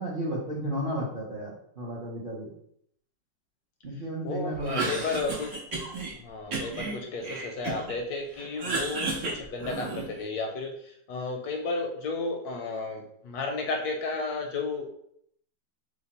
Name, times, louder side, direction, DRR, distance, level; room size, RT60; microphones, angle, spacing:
voice 1, 0.0-2.5 3.8-5.0, right 1 dB, 50° right, -5 dB, 0.6 m, -33 dB
voice 2, 4.2-5.6 6.2-10.7 11.1-14.9, left 3 dB, 70° left, 3 dB, 1.0 m, -33 dB
Cough, 4.5-6.1 6.5-8.0 8.3-10.2, right 3 dB, 80° right, 2.0 m, -33 dB
5.1 x 2.1 x 4.0 m, 0.70 s
omnidirectional pair, 1.9 m